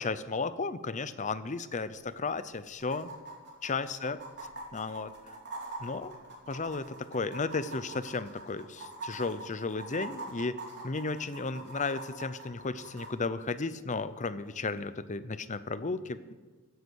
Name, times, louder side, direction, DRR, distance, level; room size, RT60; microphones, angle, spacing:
voice 1, 0.0-3.1 3.6-4.2 4.7-5.3 5.8-6.1 6.5-10.6 10.8-16.3, left 4 dB, 35° left, 14 dB, 0.7 m, -34 dB
sound 1, 1.8-1.9 2.1-2.2 2.8-13.1 14.8-14.9, right 2 dB, 50° right, 3.6 m, -43 dB
16.0 x 10.5 x 6.4 m, 1.3 s
head